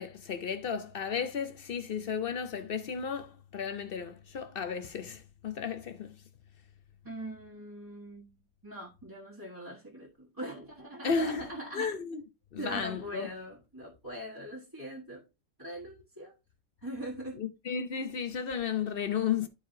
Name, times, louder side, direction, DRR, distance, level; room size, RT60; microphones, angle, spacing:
voice 1, 0.0-6.1 11.0-11.4 11.7-12.2 12.5-13.3 17.4-19.5, left 6 dB, 65° left, 0.5 m, -33 dB
voice 2, 7.0-8.3 8.6-11.9 12.6-15.2 15.6-16.3 16.8-17.4, right 1 dB, 15° right, 1.4 m, -41 dB
12.0 x 4.6 x 2.7 m
omnidirectional pair, 1.8 m